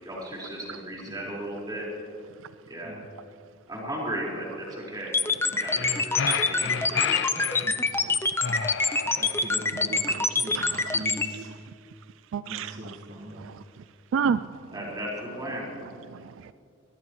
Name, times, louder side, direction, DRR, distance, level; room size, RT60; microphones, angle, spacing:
voice 1, 0.0-1.9 2.7-3.0 3.7-5.2 5.4-7.1 14.7-15.7, right 1 dB, 20° right, -4 dB, 4.7 m, -35 dB
sound 1, 5.1-11.3, left 3 dB, 10° left, 0.6 m, -25 dB
sound 2, 5.5-7.7 8.4-9.6, left 7 dB, 60° left, 0.5 m, -31 dB
voice 2, 6.6-7.0 8.0-8.2 9.9-10.2 10.5-11.0 11.3-11.4 12.3-13.0 13.4-13.6 14.1-14.5 16.1-16.5, right 6 dB, 70° right, 14 dB, 0.3 m, -31 dB
voice 3, 9.1-11.5 12.5-13.5, right 1 dB, 50° right, 0 dB, 1.6 m, -41 dB
23.0 x 18.5 x 3.1 m, 2.5 s
head